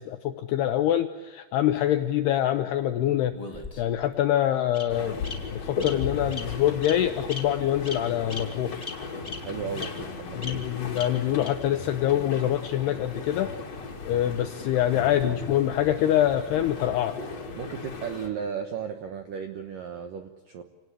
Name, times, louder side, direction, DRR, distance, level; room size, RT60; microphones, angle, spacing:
voice 1, 0.0-3.4 3.8-5.2 5.5-8.8 10.4-13.5 14.0-17.2, left 11 dB, 80° left, 8 dB, 2.4 m, -25 dB
Bird vocalization bird call bird song, 3.3-4.1 4.7-4.8 5.2-5.3 5.8-5.9 6.3-6.4 6.8-7.0 7.3-7.4 7.8-8.0 8.3-8.4 8.8-8.9 9.2-9.4 9.8-9.9 10.4-10.5 11.0-11.1 11.4-11.5, left 4 dB, 10° left, 2.0 m, -36 dB
sound 1, 4.9-18.3, left 4 dB, 40° left, 3.1 m, -36 dB
voice 2, 9.4-10.4 17.6-20.6, right 7 dB, 75° right, 6 dB, 2.0 m, -35 dB
28.5 x 18.5 x 8.5 m, 1.3 s
omnidirectional pair, 5.7 m